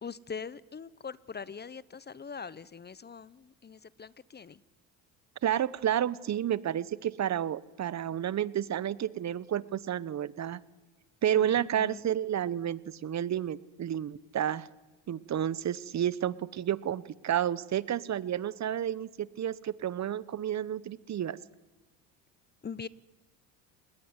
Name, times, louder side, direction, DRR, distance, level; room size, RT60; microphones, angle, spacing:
voice 1, 0.0-4.6 11.4-11.5 11.7-12.1 22.6-22.9, left 6 dB, 25° left, 20 dB, 0.9 m, -42 dB
voice 2, 5.4-10.6 11.2-14.7 15.1-21.4, right 10 dB, 45° right, 19 dB, 1.1 m, -31 dB
25.5 x 20.5 x 9.8 m, 1.1 s
supercardioid pair, 85°, 40 cm